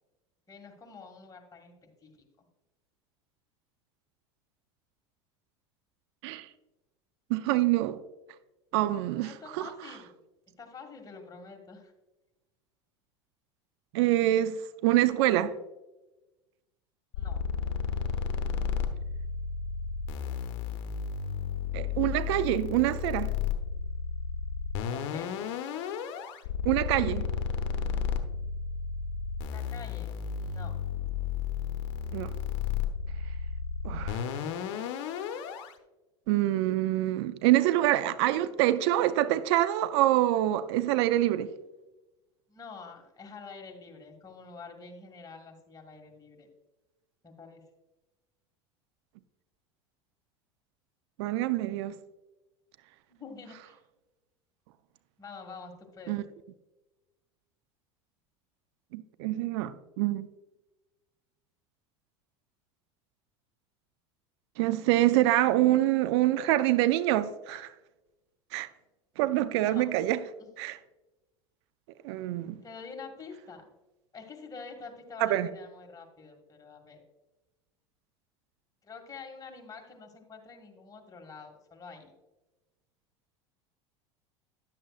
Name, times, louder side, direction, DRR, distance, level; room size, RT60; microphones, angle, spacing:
voice 1, 0.5-2.5 9.2-10.2 10.6-11.9 17.1-17.4 24.8-25.4 29.4-30.7 42.5-46.5 47.2-47.6 53.1-53.8 55.2-56.2 69.7-69.9 70.4-70.5 72.6-73.6 74.1-77.0 78.8-82.1, left 4 dB, 25° left, 1.9 m, -47 dB
voice 2, 7.3-8.0 8.7-9.7 13.9-15.5 21.7-23.3 26.6-27.3 32.1-32.3 33.8-34.2 36.3-41.5 51.2-51.9 56.1-56.2 58.9-60.3 64.6-67.7 68.5-68.7 69.2-70.2 70.6-70.8 72.0-72.6 75.2-75.5, right 14 dB, 70° right, 0.4 m, -26 dB
sound 1, 17.1-35.7, left 6 dB, 65° left, 0.9 m, -33 dB
10.5 x 7.4 x 2.4 m
hypercardioid pair, 90°, 15 cm